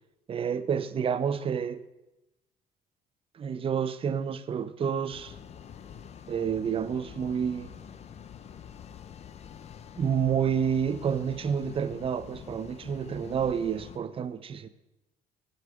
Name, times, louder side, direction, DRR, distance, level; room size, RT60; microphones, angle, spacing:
voice 1, 0.3-1.8 3.4-5.3 6.3-7.7 10.0-14.7, right 7 dB, 35° right, 0.5 m, -29 dB
sound 1, 5.1-14.0, left 8 dB, 40° left, 0.5 m, -46 dB
6.8 x 6.5 x 4.8 m
cardioid pair, 110°, 17 cm